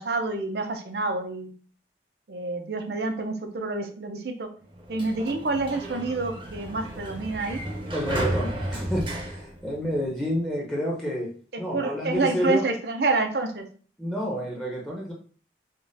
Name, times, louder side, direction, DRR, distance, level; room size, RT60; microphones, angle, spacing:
voice 1, 0.0-1.5 2.3-4.5 4.9-7.6 11.5-13.6, right 3 dB, 60° right, 5 dB, 0.6 m, -28 dB
Sliding door, 4.7-10.3, right 1 dB, 30° right, 0.8 m, -33 dB
voice 2, 7.9-11.3 11.6-12.7 14.0-15.1, equal, 5° left, -3 dB, 0.9 m, -29 dB
5.1 x 2.4 x 2.7 m, 0.43 s
head